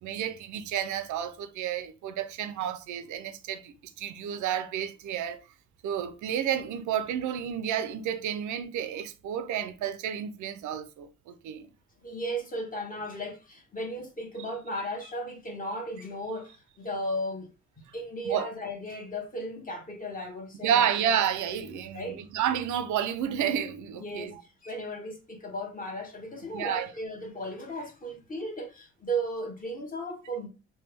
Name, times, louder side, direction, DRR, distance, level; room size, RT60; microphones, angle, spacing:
voice 1, 0.0-5.4 5.8-11.7 18.3-18.5 20.6-24.4 26.5-26.9, right 9 dB, 75° right, 0.5 m, -30 dB
voice 2, 12.0-17.5 17.9-20.9 21.5-22.2 24.0-24.3 24.6-30.5, right 1 dB, 30° left, 1.1 m, -35 dB
3.3 x 2.2 x 3.3 m
cardioid pair, 90°, 30 cm